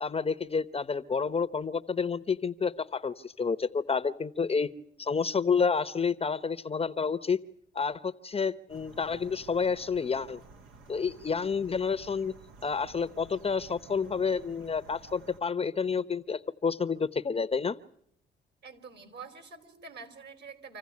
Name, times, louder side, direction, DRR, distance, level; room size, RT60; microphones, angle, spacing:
voice 1, 0.0-4.7 5.0-7.4 7.7-10.4 10.9-12.3 12.6-17.8, left 5 dB, 30° left, 15 dB, 0.9 m, -29 dB
sound 1, 8.7-15.4, right 3 dB, 80° right, 2.6 m, -53 dB
voice 2, 18.6-20.8, right 5 dB, 60° right, 8 dB, 4.3 m, -46 dB
26.5 x 15.5 x 9.5 m, 0.69 s
cardioid pair, 90°, 20 cm